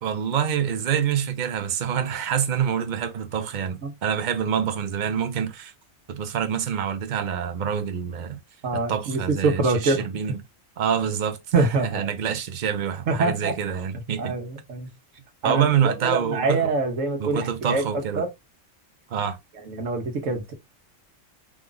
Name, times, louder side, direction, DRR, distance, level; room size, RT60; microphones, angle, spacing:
voice 1, 0.0-5.7 6.1-8.4 8.7-10.4 10.8-14.3 15.4-16.7 17.2-18.2 19.1-19.4, right 8 dB, 45° right, 0.7 m, -26 dB
voice 2, 8.6-10.1 11.5-12.1 13.1-13.5 14.2-14.9 15.4-17.8 18.2-18.3 19.7-20.5, right 3 dB, 75° right, 1.3 m, -25 dB
4.9 x 2.4 x 3.8 m
omnidirectional pair, 1.3 m